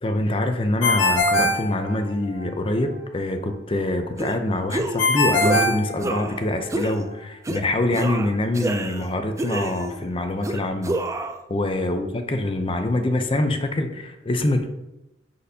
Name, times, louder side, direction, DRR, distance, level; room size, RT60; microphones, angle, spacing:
voice 1, 0.0-10.9 11.5-14.7, left 1 dB, 30° left, 7 dB, 0.6 m, -25 dB
Ringtone, 0.8-2.4 5.0-6.6, left 2 dB, 75° left, 1.1 m, -21 dB
sound 1, 4.2-4.4 4.7-5.1 5.4-5.6 6.0-6.4 6.7-7.0 7.4-7.6 7.9-9.1 9.4-10.0 10.4-11.4, right 1 dB, 15° right, 0.4 m, -28 dB
10.0 x 4.2 x 2.7 m, 0.92 s
head